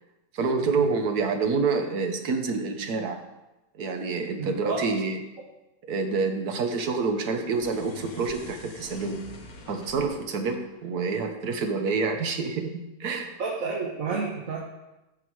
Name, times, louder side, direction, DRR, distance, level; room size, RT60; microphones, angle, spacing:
voice 1, 0.3-3.2 3.8-5.2 5.9-9.2 9.7-13.4, right 4 dB, 80° right, 5 dB, 1.6 m, -27 dB
voice 2, 4.4-4.9 13.4-14.6, right 4 dB, 60° right, -1 dB, 1.7 m, -30 dB
sound 1, 7.4-11.9, left 3 dB, 70° left, 1.7 m, -47 dB
15.0 x 5.9 x 4.8 m, 1.0 s
omnidirectional pair, 1.6 m